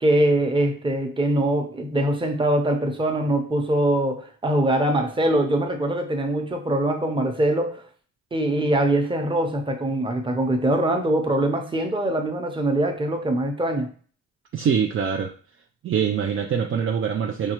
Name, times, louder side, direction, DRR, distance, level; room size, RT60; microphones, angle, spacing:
voice 1, 0.0-7.8 8.3-13.9, right 1 dB, 15° right, 4 dB, 0.8 m, -23 dB
voice 2, 14.5-15.3 15.8-17.5, right 7 dB, 45° right, 3 dB, 0.4 m, -24 dB
5.4 x 2.4 x 3.0 m, 0.44 s
cardioid pair, 90°, 30 cm